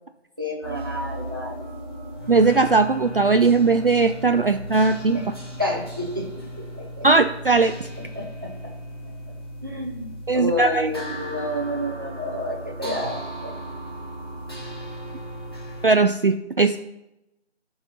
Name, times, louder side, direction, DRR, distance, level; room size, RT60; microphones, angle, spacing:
voice 1, 0.4-1.7 5.1-5.2 5.6-7.1 8.1-8.7 9.6-13.5, left 1 dB, 20° right, 0 dB, 0.8 m, -30 dB
sound 1, 0.6-15.9, equal, 20° left, 1.5 m, -36 dB
voice 2, 2.3-5.2 7.0-7.9 10.3-10.9 15.8-16.8, right 4 dB, 50° right, 7 dB, 0.4 m, -19 dB
15.5 x 5.4 x 2.9 m, 0.90 s
figure-of-eight pair, 170°, 35 cm